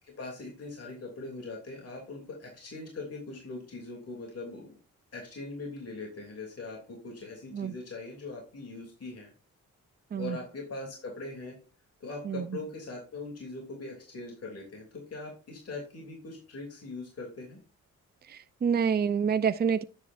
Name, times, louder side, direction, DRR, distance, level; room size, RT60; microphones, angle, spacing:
voice 1, 0.0-4.7 5.1-9.3 10.2-11.6 12.0-17.6, left 3 dB, 50° left, 3.0 m, -41 dB
voice 2, 12.2-12.6 18.3-19.8, right 6 dB, 30° right, 0.6 m, -28 dB
9.9 x 8.2 x 2.6 m
cardioid pair, 70°, 32 cm